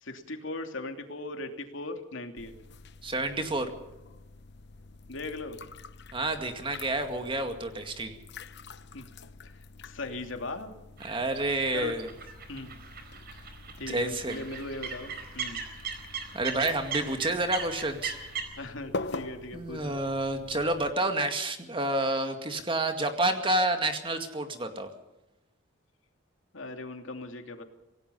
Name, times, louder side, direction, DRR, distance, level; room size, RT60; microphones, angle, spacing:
voice 1, 0.0-2.6 5.1-5.6 8.9-9.1 9.4-10.7 11.7-11.9 12.5-12.8 13.8-15.6 18.6-20.0 26.5-27.6, left 2 dB, 75° left, 5 dB, 2.7 m, -39 dB
sound 1, 2.4-20.9, left 3 dB, 60° left, 1.0 m, -45 dB
voice 2, 3.0-3.7 6.1-8.2 11.0-12.1 13.9-14.4 16.3-18.1 19.5-24.9, right 2 dB, 25° right, 6 dB, 2.1 m, -29 dB
sound 2, 11.0-18.4, right 6 dB, 55° right, 4.4 m, -39 dB
26.5 x 18.0 x 5.6 m, 0.94 s
head